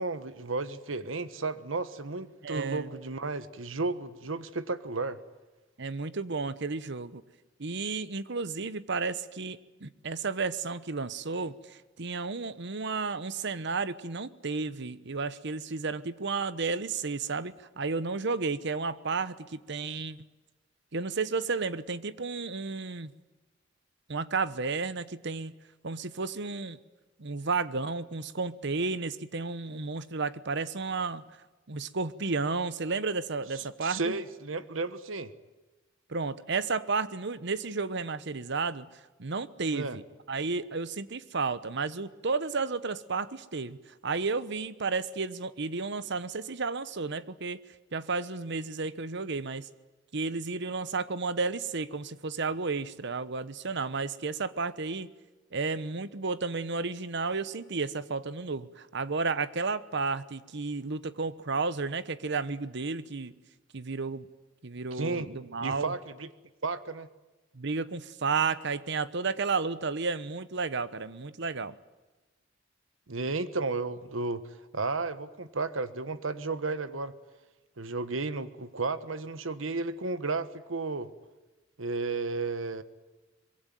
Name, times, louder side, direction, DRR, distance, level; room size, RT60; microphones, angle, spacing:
voice 1, 0.0-5.2 33.6-35.3 39.7-40.0 64.9-65.3 65.6-66.3 66.6-67.1 73.1-77.1 77.8-81.1 81.8-82.8, right 3 dB, 80° right, 13 dB, 1.3 m, -33 dB
voice 2, 2.4-2.9 5.8-7.2 7.6-20.2 20.9-23.1 24.1-25.5 25.8-26.8 27.2-31.2 31.7-34.2 36.1-38.9 39.2-40.0 40.3-43.8 44.0-47.6 47.9-49.7 50.1-55.1 55.5-63.3 63.7-64.3 64.6-65.9 67.5-71.7, right 4 dB, 65° right, 15 dB, 1.1 m, -32 dB
24.0 x 22.0 x 9.3 m, 1.1 s
head